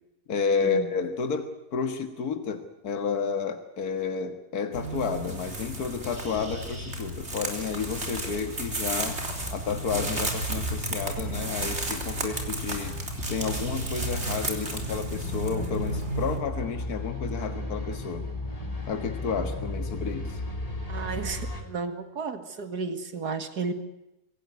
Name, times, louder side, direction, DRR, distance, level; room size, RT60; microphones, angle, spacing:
voice 1, 0.3-9.2 9.5-13.0 13.3-18.3 18.9-20.4, left 5 dB, 70° left, 7 dB, 2.1 m, -31 dB
sound 1, 4.7-16.4, right 1 dB, 45° right, 4.0 m, -32 dB
sound 2, 8.4-21.6, left 2 dB, 20° left, 3.4 m, -37 dB
voice 2, 20.9-23.7, right 5 dB, 90° right, 9 dB, 2.6 m, -33 dB
25.5 x 17.0 x 9.6 m, 0.91 s
omnidirectional pair, 1.6 m